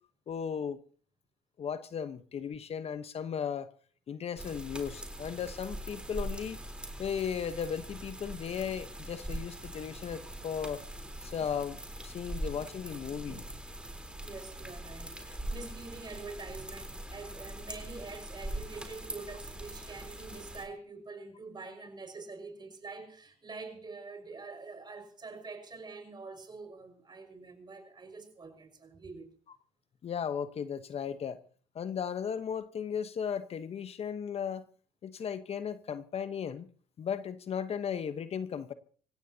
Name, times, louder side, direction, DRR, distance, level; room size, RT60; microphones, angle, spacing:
voice 1, 0.3-0.8 1.6-3.7 4.1-6.6 7.0-10.8 11.2-13.4 30.0-31.4 31.7-34.6 35.0-36.7 37.0-38.7, left 7 dB, 50° left, 1.1 m, -36 dB
sound 1, 4.4-20.7, right 1 dB, 5° right, 3.7 m, -42 dB
voice 2, 14.2-29.3, right 3 dB, 35° right, 5.6 m, -46 dB
26.0 x 16.0 x 2.8 m
supercardioid pair, 65°, 14 cm